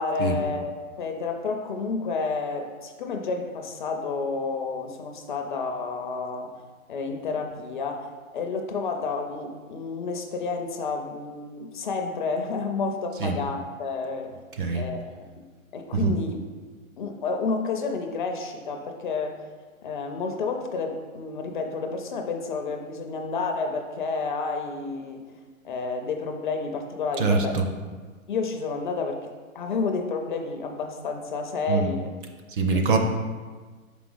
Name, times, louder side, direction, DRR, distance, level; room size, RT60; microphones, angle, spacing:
voice 1, 0.0-6.5 6.9-14.4 14.7-15.4 15.7-16.4 17.0-19.5 19.8-25.2 25.6-27.6 28.3-29.3 29.5-32.1 32.7-32.8, left 4 dB, 35° left, 4 dB, 0.5 m, -30 dB
voice 2, 14.5-14.9 15.9-16.2 27.2-27.7 31.7-31.9 32.5-33.0, right 4 dB, 40° right, 4 dB, 0.6 m, -24 dB
5.4 x 5.0 x 3.8 m, 1.4 s
hypercardioid pair, 140°, 42 cm